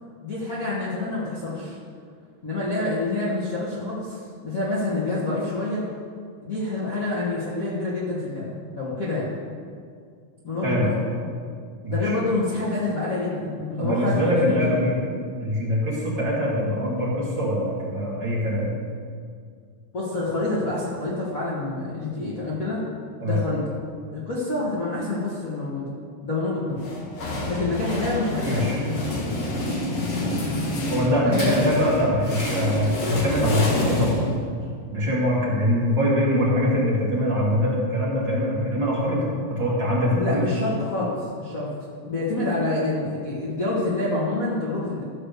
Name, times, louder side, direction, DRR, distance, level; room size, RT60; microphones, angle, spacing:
voice 1, 0.2-1.8 2.4-5.8 6.4-9.4 10.4-11.0 11.9-14.9 19.9-22.8 23.2-23.8 24.1-25.9 26.2-26.9 27.5-29.1 31.2-32.2 40.1-41.7 42.0-45.0, left 2 dB, 70° left, -8 dB, 0.8 m, -27 dB
voice 2, 10.6-11.0 11.8-12.2 13.8-15.0 15.4-18.7 23.2-23.4 28.5-28.8 30.9-34.2 34.9-40.4, equal, 35° right, -7 dB, 2.3 m, -23 dB
sound 1, 26.8-34.7, left 1 dB, 55° left, 1.7 m, -28 dB
14.0 x 4.8 x 6.7 m, 2.1 s
omnidirectional pair, 4.3 m